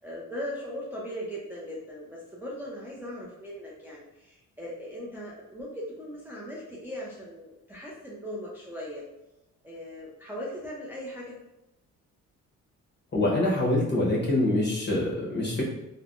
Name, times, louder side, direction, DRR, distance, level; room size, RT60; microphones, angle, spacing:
voice 1, 0.0-9.0 9.6-11.4, equal, 5° right, -6 dB, 0.6 m, -39 dB
voice 2, 13.1-15.6, left 1 dB, 35° left, -4 dB, 1.1 m, -25 dB
3.3 x 2.2 x 2.5 m, 0.90 s
cardioid pair, 90°, 30 cm